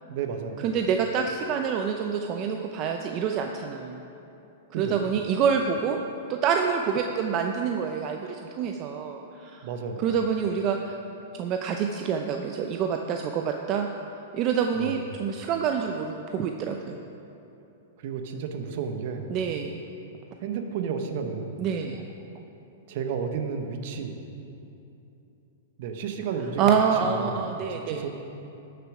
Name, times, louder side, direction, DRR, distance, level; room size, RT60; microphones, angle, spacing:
voice 1, 0.1-0.6 4.7-5.0 9.6-10.1 14.7-15.0 18.0-19.4 20.4-21.6 22.9-24.2 25.8-26.7 27.0-28.1, right 6 dB, 55° right, 6 dB, 1.0 m, -32 dB
voice 2, 0.6-4.0 4.8-6.0 6.3-9.6 10.0-11.0 11.3-13.9 14.3-17.0 19.3-19.8 21.6-22.0 26.6-28.0, right 7 dB, 35° right, 4 dB, 0.6 m, -27 dB
13.0 x 6.8 x 4.9 m, 2.9 s
hypercardioid pair, 135°, 0 cm